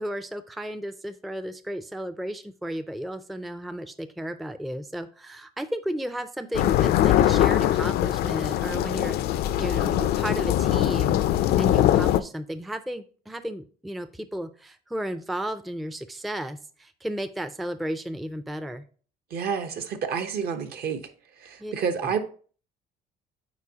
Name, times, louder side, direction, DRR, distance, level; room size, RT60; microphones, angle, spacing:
voice 1, 0.0-11.2 11.6-18.8 21.6-21.7 22.0-22.1, equal, ahead, 0.3 m, -34 dB
sound 1, 6.5-12.2, left 12 dB, 70° left, 0.4 m, -22 dB
voice 2, 19.3-21.0 21.4-22.2, right 6 dB, 65° right, 0.9 m, -29 dB
8.3 x 4.6 x 2.8 m
cardioid pair, 110°, 17 cm